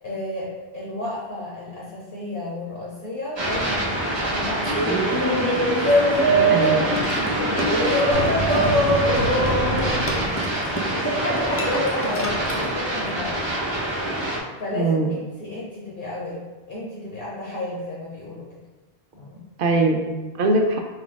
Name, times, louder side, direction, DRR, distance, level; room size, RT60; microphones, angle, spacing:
voice 1, 0.0-5.1 6.2-8.7 9.3-10.3 11.6-13.4 14.6-18.5 19.1-19.4, left 1 dB, 65° left, -5 dB, 1.1 m, -32 dB
sound 1, 3.4-14.4, right 1 dB, 30° right, 0.8 m, -26 dB
Laughter, 4.6-12.7, right 1 dB, 20° left, 0.4 m, -23 dB
voice 2, 6.5-6.9 14.7-15.2 19.6-20.8, right 2 dB, 65° right, 3 dB, 0.7 m, -21 dB
sound 2, 8.1-11.5, right 1 dB, 80° right, 1.0 m, -29 dB
4.6 x 2.4 x 3.9 m, 1.2 s
omnidirectional pair, 1.0 m